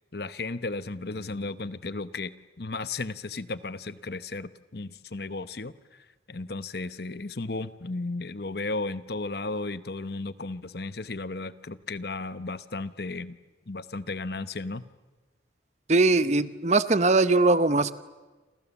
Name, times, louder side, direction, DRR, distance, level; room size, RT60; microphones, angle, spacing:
voice 1, 0.1-13.4 13.7-14.8, left 3 dB, 55° left, 14 dB, 0.9 m, -34 dB
voice 2, 15.9-17.9, right 3 dB, 35° right, 14 dB, 0.8 m, -21 dB
28.5 x 28.0 x 7.2 m, 1.3 s
head